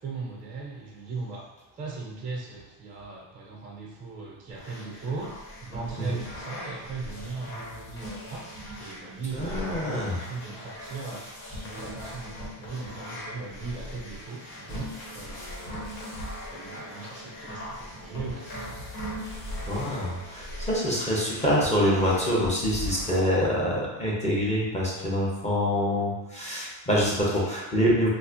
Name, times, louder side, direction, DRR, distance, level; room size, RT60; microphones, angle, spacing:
voice 1, 0.0-1.5 1.7-5.3 5.6-8.5 8.8-11.3 11.5-15.8 16.5-18.9, right 4 dB, 20° right, -3 dB, 0.3 m, -38 dB
sound 1, 4.5-23.2, equal, 85° left, 1.5 m, -39 dB
voice 2, 9.3-10.2 19.7-28.1, equal, 15° left, -6 dB, 0.7 m, -25 dB
4.1 x 2.4 x 2.5 m, 1.0 s
cardioid pair, 145°, 46 cm